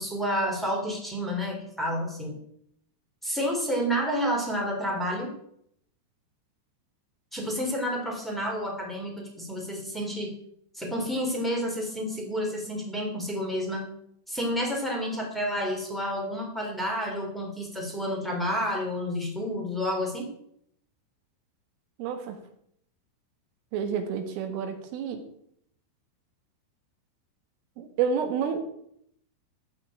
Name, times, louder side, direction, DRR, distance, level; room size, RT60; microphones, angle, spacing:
voice 1, 0.0-2.4 3.2-5.3 7.3-10.3 10.7-13.9 14.3-20.3, equal, ahead, -1 dB, 2.8 m, -30 dB
voice 2, 22.0-22.4 23.7-25.2 27.8-28.6, right 7 dB, 85° right, 6 dB, 4.3 m, -29 dB
14.5 x 6.1 x 8.9 m, 0.70 s
omnidirectional pair, 5.7 m